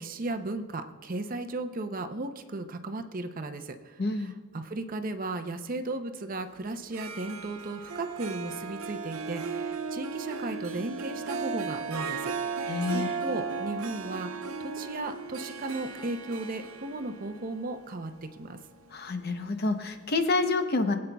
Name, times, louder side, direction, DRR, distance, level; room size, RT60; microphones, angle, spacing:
voice 1, 0.0-18.6, right 2 dB, 40° right, 7 dB, 0.6 m, -36 dB
voice 2, 4.0-4.3 12.7-13.1 18.9-21.0, left 3 dB, 50° left, 7 dB, 0.7 m, -28 dB
Harp, 6.8-19.7, right 5 dB, 85° right, 0.6 m, -36 dB
25.0 x 8.6 x 2.3 m, 1.5 s
head